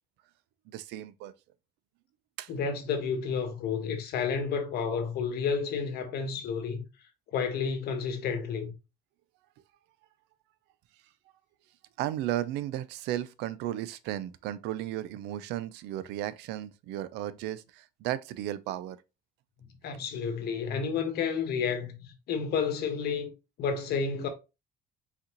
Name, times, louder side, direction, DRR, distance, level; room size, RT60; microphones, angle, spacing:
voice 1, 0.7-1.3 2.4-2.5 12.0-19.0, right 13 dB, 90° right, 0.5 m, -34 dB
voice 2, 2.5-6.8 7.3-8.7 19.8-23.3 23.6-24.3, left 6 dB, 70° left, 1.3 m, -31 dB
4.1 x 4.0 x 2.9 m
cardioid pair, 110°, 17 cm